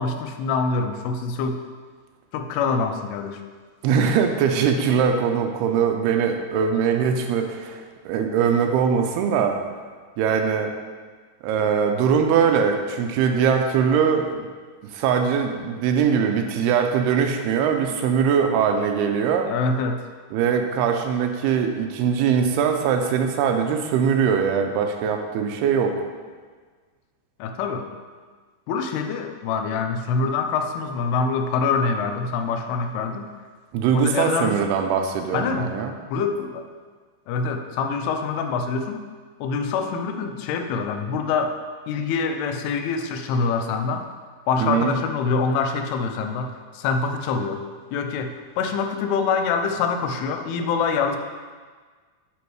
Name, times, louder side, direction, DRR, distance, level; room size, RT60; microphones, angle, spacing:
voice 1, 0.0-1.6 2.3-3.4 19.5-20.0 27.4-27.9 28.7-33.3 33.9-34.6 35.3-35.7 36.1-36.7 37.3-39.0 39.4-41.6 41.9-44.1 44.5-47.6 47.9-51.2, left 5 dB, 85° left, 6 dB, 2.6 m, -25 dB
voice 2, 3.8-9.6 10.2-10.7 11.4-14.5 14.9-19.5 20.3-26.0 33.7-35.9 44.6-44.9, right 7 dB, 85° right, 4 dB, 2.6 m, -21 dB
9.8 x 4.3 x 4.7 m, 1.5 s
omnidirectional pair, 4.5 m